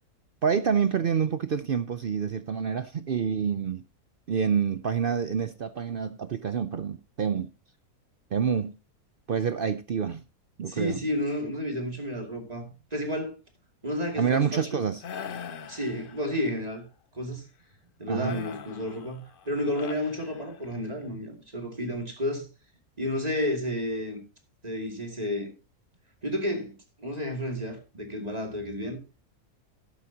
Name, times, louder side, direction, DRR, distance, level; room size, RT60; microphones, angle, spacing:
voice 1, 0.4-3.8 4.3-7.5 8.3-8.8 9.3-10.2 10.6-11.0 14.2-15.0 18.1-18.4, right 7 dB, 60° right, 0.5 m, -27 dB
voice 2, 10.7-12.7 12.9-13.4 13.8-14.8 15.7-16.9 17.1-17.5 18.0-22.5 23.0-24.2 24.6-25.5 26.2-29.0, left 1 dB, 25° right, 2.6 m, -31 dB
sound 1, 15.0-16.6 18.2-20.9, left 7 dB, 50° left, 0.7 m, -42 dB
12.0 x 11.5 x 2.8 m
omnidirectional pair, 1.6 m